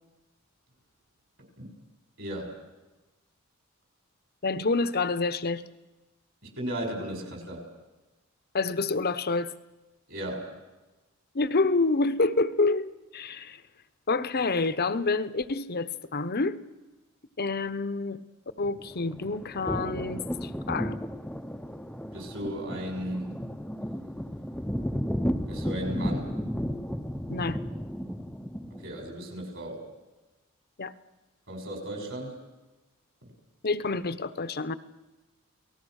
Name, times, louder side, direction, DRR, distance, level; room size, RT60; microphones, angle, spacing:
voice 1, 2.2-2.6 6.6-7.6 10.1-10.5 22.1-23.4 25.5-26.3 28.8-29.8 31.5-32.4, equal, 60° right, 6.6 m, -35 dB
voice 2, 4.4-5.6 8.5-9.5 11.3-13.6 14.1-16.6 17.4-18.2 18.6-21.0 27.3-27.6 30.8-30.9 33.6-34.7, left 3 dB, 45° left, 0.9 m, -28 dB
sound 1, 18.6-29.0, equal, 5° left, 0.7 m, -34 dB
29.0 x 18.5 x 6.5 m
head